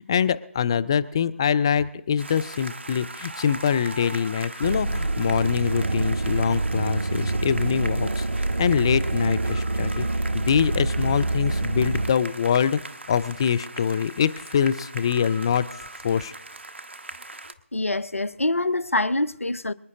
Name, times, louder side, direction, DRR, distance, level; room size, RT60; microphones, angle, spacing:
voice 1, 0.0-10.1 10.3-12.8 13.1-16.3, left 7 dB, 20° left, 0.4 m, -24 dB
sound 1, 2.2-17.5, right 2 dB, 55° right, 1.0 m, -40 dB
sound 2, 4.6-12.1, right 2 dB, 75° right, 0.5 m, -26 dB
voice 2, 17.7-19.7, left 2 dB, 80° left, 0.7 m, -25 dB
25.5 x 9.6 x 3.8 m
figure-of-eight pair, 155°, 7 cm